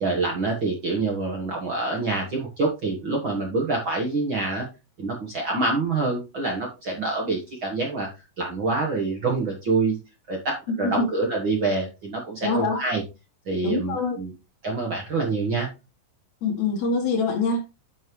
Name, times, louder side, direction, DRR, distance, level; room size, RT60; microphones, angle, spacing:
voice 1, 0.0-4.6 5.0-8.1 8.4-10.0 10.3-13.0 13.4-14.3 14.6-15.7, right 3 dB, 50° right, 1.6 m, -26 dB
voice 2, 12.4-12.8 13.6-14.2 16.4-17.6, left 3 dB, 60° left, 2.4 m, -24 dB
10.0 x 5.4 x 3.1 m
omnidirectional pair, 4.1 m